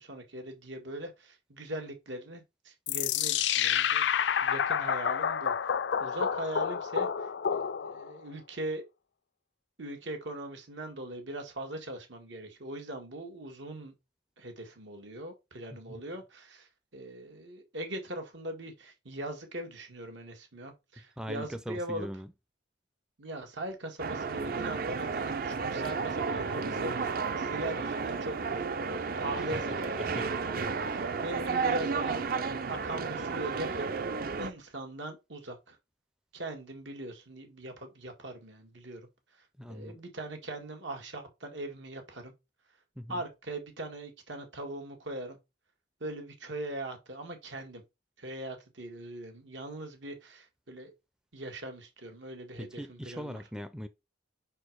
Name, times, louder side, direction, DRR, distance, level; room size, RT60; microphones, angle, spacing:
voice 1, 0.0-5.7 6.0-8.8 9.8-13.9 14.4-22.1 23.2-29.6 29.9-30.1 30.4-33.9 34.4-35.8 36.3-39.1 39.7-42.3 43.1-45.4 46.0-47.8 48.2-50.9 51.3-53.4, right 1 dB, 85° right, 1.9 m, -40 dB
sound 1, 2.9-8.2, left 8 dB, 75° left, 0.4 m, -29 dB
voice 2, 21.0-22.3 29.3-29.6 30.0-30.3 30.8-31.0 39.6-40.0 43.0-43.3 52.6-53.9, equal, 5° right, 0.4 m, -41 dB
sound 2, 24.0-34.5, right 5 dB, 50° right, 0.5 m, -32 dB
5.1 x 4.4 x 4.6 m
head